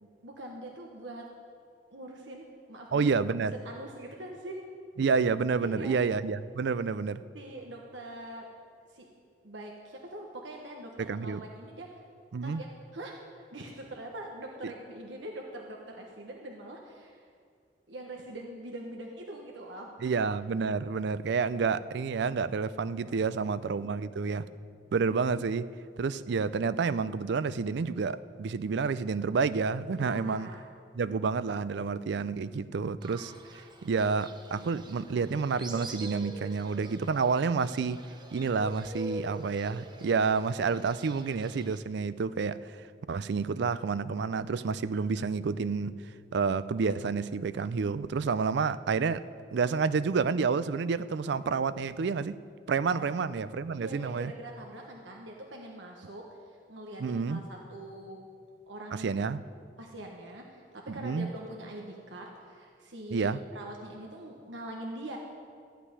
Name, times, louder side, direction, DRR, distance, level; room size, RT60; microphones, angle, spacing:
voice 1, 0.2-1.2 1.9-3.1 3.5-4.6 5.6-5.9 7.3-8.5 8.9-9.1 9.4-12.0 12.4-12.7 12.9-13.1 13.5-17.3 17.9-20.2 30.0-30.6 52.9-53.1 53.7-58.2 58.7-59.2 59.8-65.2, right 1 dB, 85° right, 0 dB, 1.2 m, -43 dB
voice 2, 2.9-3.6 5.0-7.2 11.0-11.4 12.3-12.6 14.6-14.7 20.0-24.5 24.9-25.7 26.0-30.5 30.9-33.3 33.8-38.0 38.3-42.6 43.1-45.9 46.3-49.2 49.5-52.4 52.7-54.3 57.0-57.4 58.9-59.4 60.9-61.3 63.1-63.4, right 5 dB, 65° right, 15 dB, 0.4 m, -29 dB
Fowl, 33.0-41.8, right 2 dB, 25° right, 0.9 m, -45 dB
14.0 x 5.8 x 9.6 m, 2.2 s
head